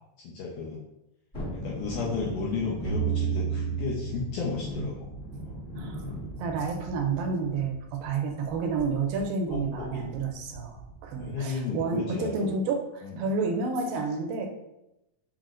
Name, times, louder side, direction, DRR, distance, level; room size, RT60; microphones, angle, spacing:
voice 1, 0.2-0.8 1.5-5.6 9.5-10.1 11.2-12.5 13.0-13.3, left 5 dB, 80° left, -4 dB, 1.9 m, -33 dB
Thunderstorm, 1.3-11.6 11.9-12.0, right 1 dB, 50° left, 0.7 m, -41 dB
sound 1, 2.8-5.8, right 7 dB, 60° right, 2.3 m, -31 dB
voice 2, 6.3-14.5, right 4 dB, 80° right, 3 dB, 2.3 m, -30 dB
6.2 x 2.1 x 3.7 m, 0.90 s
omnidirectional pair, 4.2 m